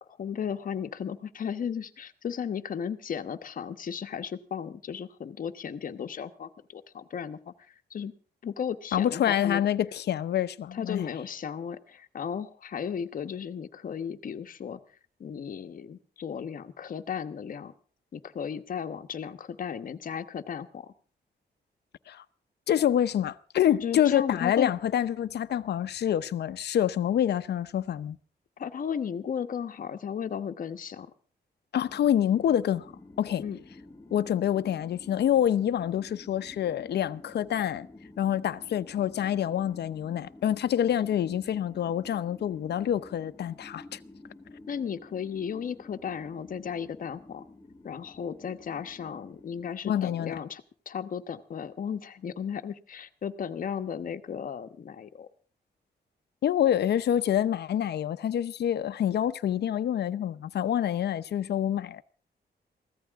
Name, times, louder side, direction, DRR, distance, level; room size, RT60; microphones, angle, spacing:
voice 1, 0.2-7.5 7.9-8.1 8.4-9.7 10.7-14.8 15.2-17.7 18.1-20.9 23.8-24.7 28.6-31.1 33.4-33.6 44.7-47.5 47.8-55.3, left 7 dB, 50° left, 1.2 m, -35 dB
voice 2, 8.9-11.1 22.1-22.2 22.7-28.2 31.7-32.9 33.2-33.4 34.1-37.9 38.2-44.0 49.8-50.4 56.4-62.0, left 10 dB, 70° left, 0.8 m, -27 dB
sound 1, 31.8-49.7, left 2 dB, 25° left, 2.4 m, -51 dB
23.0 x 16.0 x 3.6 m
wide cardioid pair, 175°, 18 cm